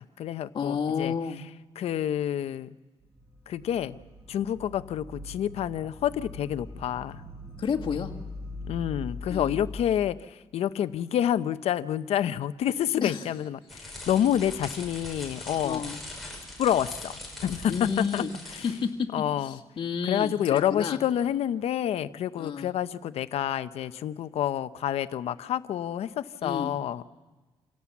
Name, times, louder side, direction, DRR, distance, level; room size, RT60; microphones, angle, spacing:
voice 1, 0.0-1.1 1.8-2.7 3.5-4.0 4.3-7.2 8.6-15.9 16.6-17.1 17.4-18.2 19.1-19.6 20.0-27.0, left 10 dB, 85° left, 13 dB, 0.7 m, -28 dB
voice 2, 0.5-1.4 7.6-8.1 9.3-9.6 13.0-13.3 15.6-16.0 17.7-18.3 18.6-19.1 19.4-21.0 22.4-22.7 26.4-26.7, left 6 dB, 55° left, 1 dB, 2.1 m, -30 dB
sound 1, 3.0-9.8, left 2 dB, 25° right, 4.6 m, -42 dB
sound 2, 13.7-18.9, left 1 dB, ahead, 6.0 m, -41 dB
27.5 x 17.0 x 7.2 m, 1.2 s
cardioid pair, 100°, 10 cm